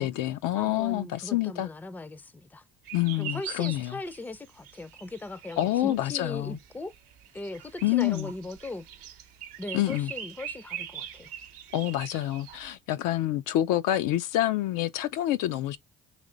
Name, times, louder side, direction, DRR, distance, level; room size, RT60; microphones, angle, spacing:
voice 1, 0.0-1.7 2.9-4.0 5.6-6.6 7.8-8.3 9.7-10.1 11.7-15.8, left 14 dB, 65° left, 0.5 m, -27 dB
voice 2, 0.6-2.6 3.2-6.9 7.3-8.8 9.6-11.3, left 2 dB, 5° left, 0.4 m, -39 dB
sound 1, 2.8-12.7, right 10 dB, 70° right, 0.8 m, -43 dB
3.3 x 3.2 x 3.8 m
hypercardioid pair, 65°, 35 cm